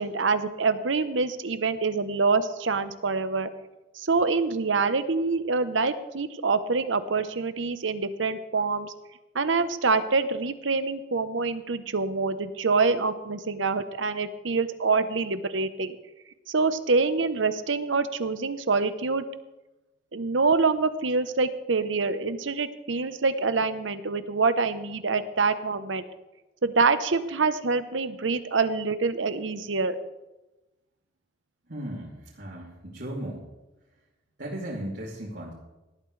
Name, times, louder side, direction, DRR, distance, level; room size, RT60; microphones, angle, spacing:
voice 1, 0.0-3.5 3.9-8.9 9.3-16.0 16.5-19.3 20.1-26.0 26.6-30.0, right 4 dB, 85° right, 11 dB, 0.9 m, -26 dB
voice 2, 31.7-33.4 34.4-35.5, right 1 dB, 60° right, -6 dB, 3.0 m, -36 dB
18.5 x 12.5 x 3.3 m, 1.0 s
head